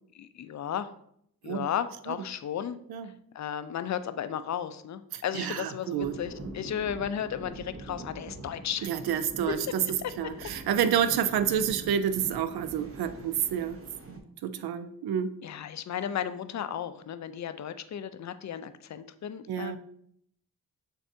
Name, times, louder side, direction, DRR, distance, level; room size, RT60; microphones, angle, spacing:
voice 1, 0.1-0.9 1.4-2.8 3.3-8.9 9.5-9.6 10.0-10.1 15.4-19.8, left 9 dB, 50° left, 12 dB, 0.5 m, -34 dB
voice 2, 5.1-6.2 8.8-13.8 14.4-15.4 19.5-19.8, right 9 dB, 80° right, 11 dB, 0.5 m, -29 dB
sound 1, 6.0-14.2, right 2 dB, 40° right, 0.9 m, -44 dB
6.8 x 2.7 x 2.6 m, 0.70 s
cardioid pair, 55°, 37 cm